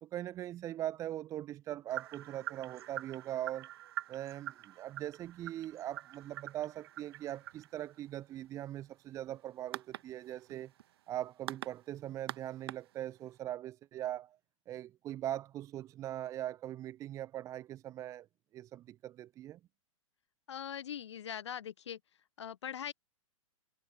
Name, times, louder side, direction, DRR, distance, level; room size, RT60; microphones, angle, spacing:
voice 1, 0.0-3.7 4.1-10.7 11.1-14.4 14.7-18.3 18.5-19.6, right 12 dB, 20° right, 0.6 m, -41 dB
sound 1, 1.9-13.4, right 13 dB, 45° right, 1.3 m, -46 dB
voice 2, 20.5-22.0 22.4-22.9, left 9 dB, 55° left, 0.6 m, -41 dB
figure-of-eight pair, 110°, 17 cm